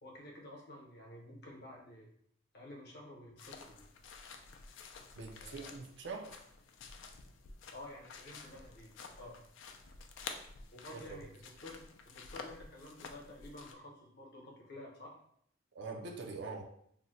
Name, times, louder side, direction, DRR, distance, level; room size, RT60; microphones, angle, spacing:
voice 1, 0.0-2.1 2.5-3.9 5.4-5.8 7.7-8.9 9.2-9.4 10.7-15.2, left 1 dB, 55° left, -1 dB, 0.8 m, -51 dB
sound 1, 3.4-13.7, left 4 dB, 70° left, 0.4 m, -51 dB
voice 2, 5.2-6.4 15.7-16.6, right 4 dB, 60° right, 2 dB, 0.5 m, -43 dB
2.7 x 2.1 x 3.9 m, 0.67 s
head